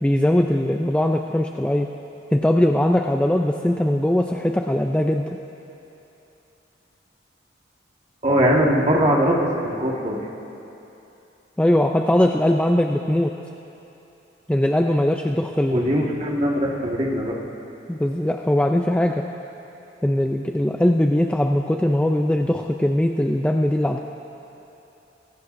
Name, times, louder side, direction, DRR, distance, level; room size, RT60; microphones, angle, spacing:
voice 1, 0.0-1.9 2.3-5.4 11.6-13.3 14.5-15.8 17.9-19.3 20.0-24.0, left 1 dB, 5° left, 3 dB, 0.3 m, -20 dB
voice 2, 8.2-10.2 15.7-17.3, equal, 35° right, -2 dB, 1.6 m, -21 dB
23.0 x 16.5 x 2.6 m, 2.9 s
head